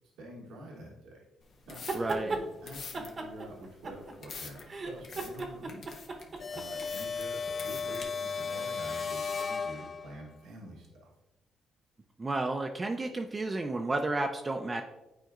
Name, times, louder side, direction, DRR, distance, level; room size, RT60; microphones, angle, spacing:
voice 1, 0.2-1.2 1.7-5.8 6.5-11.1, right 1 dB, 90° right, -2 dB, 1.2 m, -47 dB
sound 1, 1.4-8.0, left 5 dB, 60° left, 0.8 m, -47 dB
sound 2, 1.7-2.4 2.9-4.3 4.7-6.9, right 3 dB, 40° right, 0.9 m, -36 dB
voice 2, 1.9-2.4 12.2-14.8, right 2 dB, 25° right, 4 dB, 0.5 m, -32 dB
sound 3, 6.4-10.3, left 5 dB, 40° left, 0.4 m, -35 dB
9.0 x 4.3 x 2.4 m, 0.99 s
cardioid pair, 90°, 0 cm